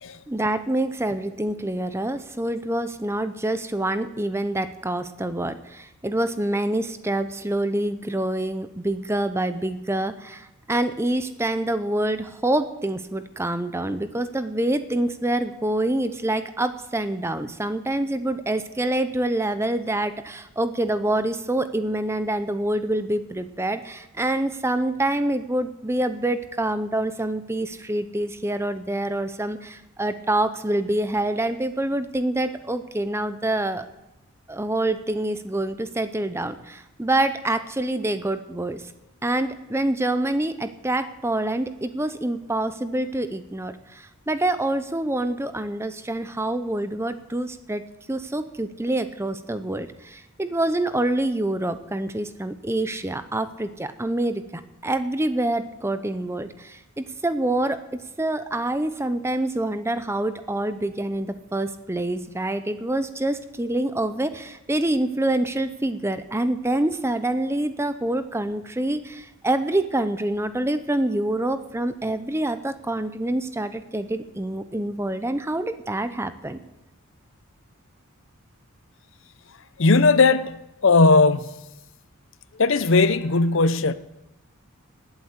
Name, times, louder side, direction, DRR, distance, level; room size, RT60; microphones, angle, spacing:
voice 1, 0.3-33.9 34.5-38.8 39.2-47.8 48.1-57.8 58.2-76.6, right 1 dB, 10° right, 0.7 m, -26 dB
voice 2, 79.8-81.5 82.6-83.9, left 3 dB, 60° left, 0.7 m, -18 dB
20.0 x 8.1 x 8.1 m
head